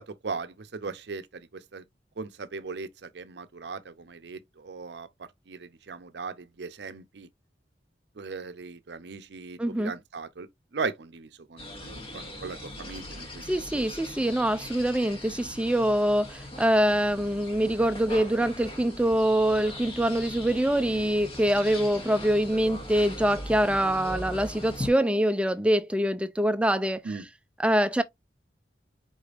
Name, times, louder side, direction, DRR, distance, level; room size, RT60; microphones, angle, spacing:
voice 1, 0.0-1.8 2.2-7.3 8.2-13.8 27.0-27.3, right 4 dB, 70° right, 0.6 m, -38 dB
voice 2, 9.6-9.9 13.5-27.0 27.6-28.0, right 1 dB, 5° right, 0.4 m, -24 dB
sound 1, 11.6-24.9, left 1 dB, 30° left, 1.1 m, -40 dB
5.1 x 3.8 x 2.5 m
head